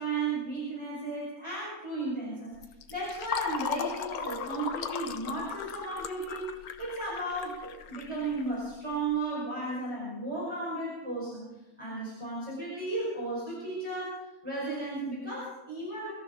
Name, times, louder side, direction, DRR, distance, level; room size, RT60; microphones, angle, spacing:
voice 1, 0.0-2.5 2.9-6.5 6.8-11.5 11.8-14.2 14.4-16.1, right 2 dB, 20° right, -6 dB, 5.4 m, -34 dB
Fill (with liquid), 2.6-9.0, left 7 dB, 85° left, 1.4 m, -37 dB
24.5 x 13.5 x 3.9 m, 1.0 s
omnidirectional pair, 1.5 m